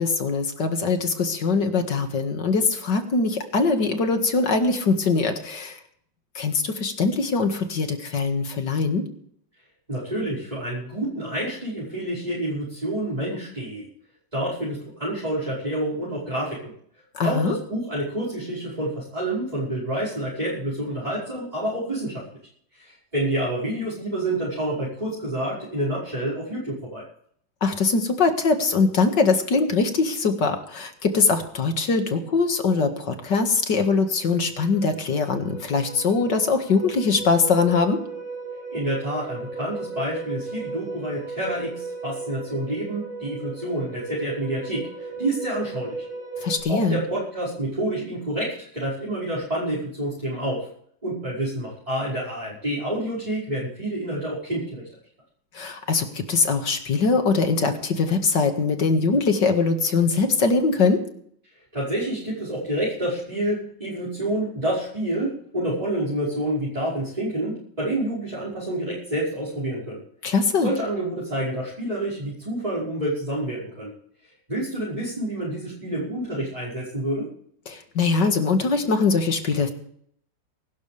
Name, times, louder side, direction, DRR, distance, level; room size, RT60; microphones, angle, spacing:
voice 1, 0.0-5.8 6.4-9.0 17.1-17.6 27.6-38.0 46.4-47.0 55.5-61.0 70.2-70.7 77.7-79.7, left 4 dB, 70° left, 5 dB, 2.5 m, -22 dB
voice 2, 9.9-13.9 14.3-16.7 17.2-22.2 22.7-27.0 38.7-46.1 46.4-50.7 51.0-54.8 61.7-73.9 74.5-77.3, right 1 dB, 20° right, -10 dB, 5.6 m, -28 dB
sound 1, 33.7-33.8 34.1-46.6, right 3 dB, 80° right, 7.2 m, -36 dB
23.5 x 12.5 x 3.4 m, 0.65 s
omnidirectional pair, 2.0 m